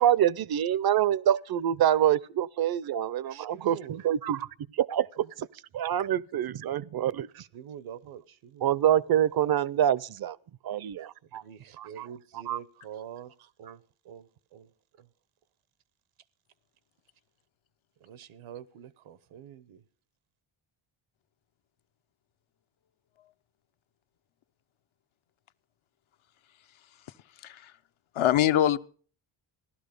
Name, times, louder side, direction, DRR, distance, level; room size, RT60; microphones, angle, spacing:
voice 1, 0.0-4.5 4.7-5.5 5.7-7.3 8.6-10.4 10.6-11.4 11.8-12.1 12.5-12.6, right 10 dB, 50° right, 0.5 m, -26 dB
voice 2, 3.2-4.1 5.2-5.3 7.3-8.8 11.0-14.7 15.0-15.1 18.0-19.8, right 9 dB, 85° right, 1.0 m, -46 dB
voice 3, 28.1-28.8, left 11 dB, 75° left, 0.8 m, -23 dB
16.0 x 12.0 x 5.1 m
cardioid pair, 105°, 48 cm